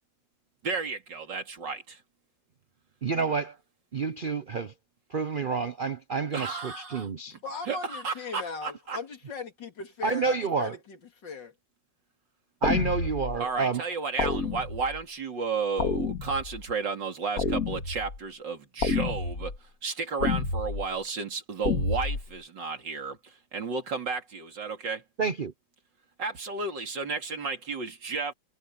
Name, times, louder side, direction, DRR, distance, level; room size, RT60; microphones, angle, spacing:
voice 1, 0.6-2.0 6.3-7.1 7.7-9.0 13.4-19.5 19.8-25.0 26.2-28.3, right 4 dB, 85° right, 3.4 m, -33 dB
voice 2, 3.0-3.6 3.9-4.7 5.1-7.3 10.0-10.7 12.6-13.8 25.2-25.5, right 4 dB, 55° right, 0.5 m, -29 dB
voice 3, 7.4-11.5, left 4 dB, 85° left, 3.3 m, -38 dB
sound 1, 12.6-13.4 14.2-15.0 15.8-16.6 17.4-18.2 18.8-19.6 20.2-20.8 21.6-22.2, left 4 dB, 50° left, 2.6 m, -29 dB
omnidirectional pair, 1.9 m